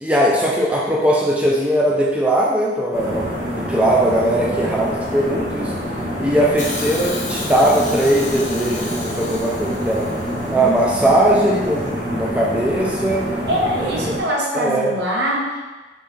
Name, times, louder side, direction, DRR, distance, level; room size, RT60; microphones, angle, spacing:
voice 1, 0.0-3.3 3.5-5.7 6.2-10.1 10.5-13.2 13.8-14.1 14.5-14.9, right 1 dB, 5° right, -4 dB, 0.4 m, -19 dB
sound 1, 2.9-14.2, equal, 40° right, 1.5 m, -26 dB
Hiss, 6.6-10.7 11.7-11.8, left 3 dB, 40° left, 0.7 m, -33 dB
voice 2, 13.5-15.6, equal, 70° right, -3 dB, 1.0 m, -22 dB
4.1 x 3.8 x 3.3 m, 1.2 s
head